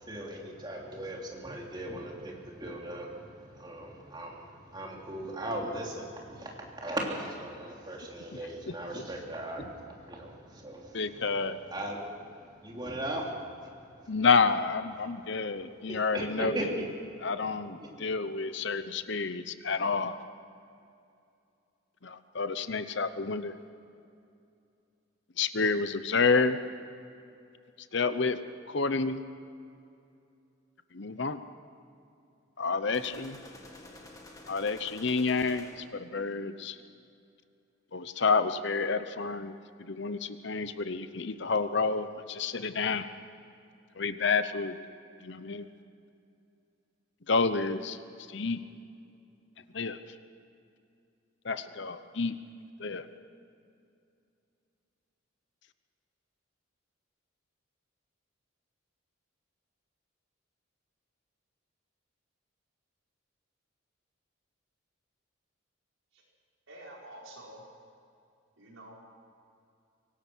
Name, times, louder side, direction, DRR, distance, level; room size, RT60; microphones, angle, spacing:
voice 1, 0.0-11.2 11.7-13.7 14.0-14.1 15.9-16.7 17.8-17.9, right 1 dB, 20° right, -1 dB, 3.2 m, -38 dB
voice 2, 10.9-11.6 14.1-16.8 17.2-20.2 22.0-23.6 25.4-26.6 27.9-28.4 28.7-29.2 30.9-31.4 32.6-33.4 34.5-36.8 37.9-43.1 44.0-44.8 45.2-45.7 47.3-48.0 48.3-48.6 49.7-50.0 51.4-52.4 52.8-53.1, left 4 dB, 55° left, 12 dB, 0.8 m, -29 dB
sound 1, 32.9-36.1, left 1 dB, 15° left, 2.0 m, -50 dB
voice 3, 66.7-67.6 68.6-68.9, right 1 dB, 70° right, -3 dB, 5.2 m, -48 dB
24.5 x 17.5 x 6.3 m, 2.5 s
head